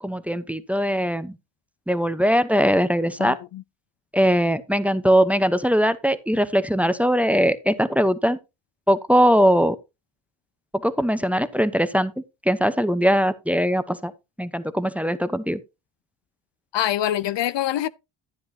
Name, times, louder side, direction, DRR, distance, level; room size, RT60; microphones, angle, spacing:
voice 1, 0.0-1.4 1.9-3.4 4.1-8.4 8.9-9.8 10.8-14.1 14.4-15.6, equal, 5° right, 0.9 m, -21 dB
voice 2, 3.2-3.6 16.7-17.9, left 12 dB, 60° left, 0.6 m, -25 dB
10.5 x 9.7 x 2.8 m
cardioid pair, 65°, 49 cm